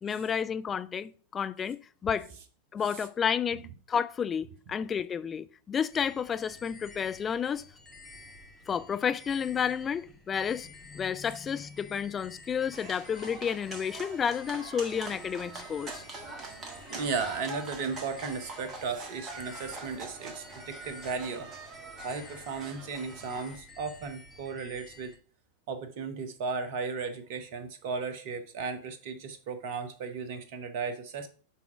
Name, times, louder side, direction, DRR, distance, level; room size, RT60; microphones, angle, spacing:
voice 1, 0.0-2.3 2.7-3.6 3.9-7.6 8.7-16.0, left 7 dB, 20° left, 0.3 m, -31 dB
sound 1, 5.9-25.2, left 2 dB, 10° right, 1.7 m, -52 dB
sound 2, 12.7-23.6, right 3 dB, 25° right, 1.5 m, -44 dB
voice 2, 16.9-21.5 22.0-25.1 25.7-31.3, right 5 dB, 50° right, 0.9 m, -35 dB
5.8 x 3.6 x 5.7 m
figure-of-eight pair, 90°, 0 cm